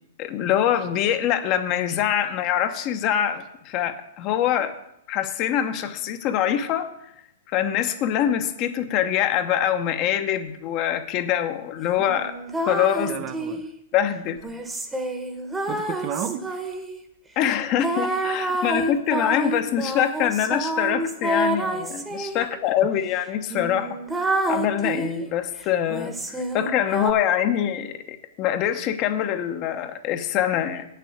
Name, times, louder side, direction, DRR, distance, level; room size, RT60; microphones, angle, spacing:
voice 1, 0.2-4.8 5.1-6.9 7.5-12.3 12.6-13.1 13.9-14.4 17.4-30.9, left 10 dB, 40° left, 1.0 m, -24 dB
sound 1, 12.0-13.7 14.4-17.0 17.8-22.5 23.1-23.2 23.5-25.3 25.9-27.1, right 1 dB, 10° right, 1.2 m, -28 dB
voice 2, 13.1-13.7 15.7-16.8 18.5-18.7 22.4-22.5, right 9 dB, 35° right, 0.7 m, -33 dB
8.2 x 6.7 x 8.0 m
hypercardioid pair, 125°, 0 cm